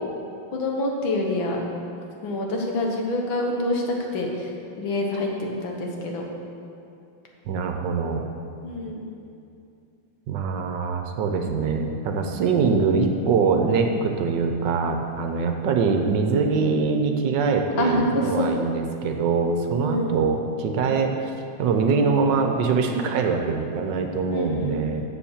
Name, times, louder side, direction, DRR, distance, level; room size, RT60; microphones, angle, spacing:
voice 1, 0.5-1.6 2.2-4.5 4.8-6.2 8.6-9.1 17.8-18.5 19.8-20.1 24.3-24.9, left 1 dB, 80° left, 0 dB, 2.0 m, -26 dB
voice 2, 7.5-8.2 10.3-21.3 21.6-25.0, right 5 dB, 70° right, 4 dB, 1.3 m, -23 dB
7.2 x 7.2 x 7.2 m, 2.5 s
omnidirectional pair, 2.1 m